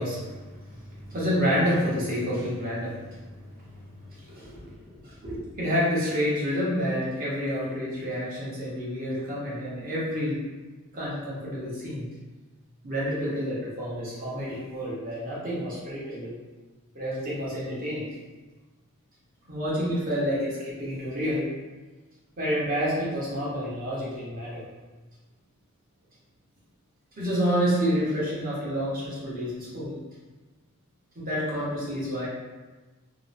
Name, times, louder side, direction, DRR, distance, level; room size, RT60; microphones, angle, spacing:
voice 1, 0.0-10.4 10.9-12.1 12.8-16.3 16.9-18.1 19.5-21.5 22.4-24.6 27.2-29.9 31.2-32.3, equal, 40° right, -7 dB, 0.8 m, -29 dB
2.7 x 2.0 x 2.4 m, 1.2 s
head